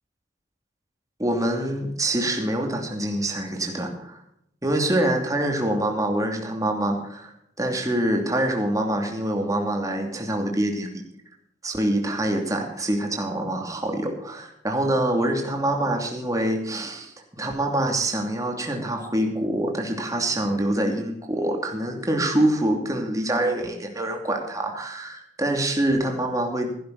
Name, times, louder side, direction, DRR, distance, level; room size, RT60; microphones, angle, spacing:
voice 1, 1.2-4.2 4.6-7.3 7.6-11.0 11.6-26.8, right 1 dB, 20° right, 2 dB, 2.8 m, -25 dB
16.0 x 11.5 x 4.1 m, 0.73 s
head